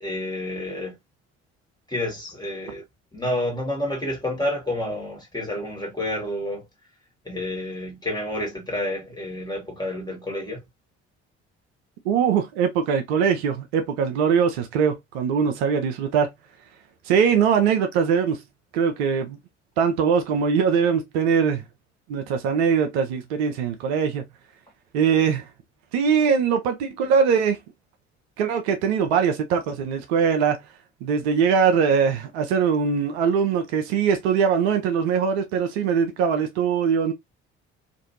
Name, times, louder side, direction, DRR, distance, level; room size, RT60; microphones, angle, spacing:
voice 1, 0.0-0.9 1.9-2.8 3.1-6.6 7.2-10.6, left 1 dB, 10° left, 1.6 m, -29 dB
voice 2, 12.0-16.3 17.1-18.4 18.7-19.4 19.8-21.6 22.1-24.2 24.9-25.5 25.9-27.6 28.4-30.6 31.0-37.1, right 6 dB, 65° right, 0.6 m, -21 dB
2.6 x 2.5 x 2.7 m
figure-of-eight pair, 50°, 34 cm